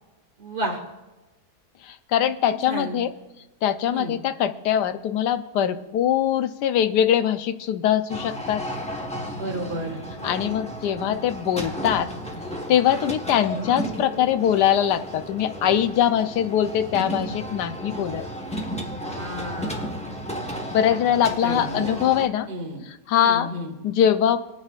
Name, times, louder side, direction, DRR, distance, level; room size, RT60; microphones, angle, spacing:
voice 1, 0.4-0.8 2.7-3.0 3.9-4.1 9.4-10.0 19.1-20.0 21.4-22.0 22.5-22.8 23.2-23.7, right 1 dB, 75° right, 1 dB, 2.4 m, -31 dB
voice 2, 1.9-3.1 3.6-8.6 10.2-12.1 12.7-18.2 20.7-22.5 23.1-23.5 23.8-24.4, left 10 dB, 90° left, 11 dB, 1.3 m, -22 dB
sound 1, 8.1-22.3, equal, 5° left, 1.0 m, -33 dB
26.5 x 9.4 x 2.4 m, 1.1 s
omnidirectional pair, 1.7 m